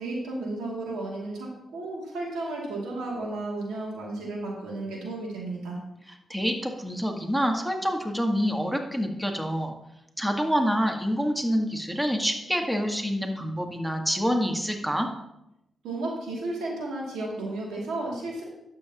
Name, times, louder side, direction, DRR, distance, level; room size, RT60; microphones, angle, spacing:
voice 1, 0.0-1.5 1.7-5.8 15.8-18.4, right 2 dB, 90° right, -3 dB, 2.5 m, -33 dB
voice 2, 6.1-9.7 10.2-15.1, equal, 5° right, 3 dB, 1.5 m, -27 dB
11.5 x 7.2 x 2.9 m, 0.86 s
supercardioid pair, 55°, 0 cm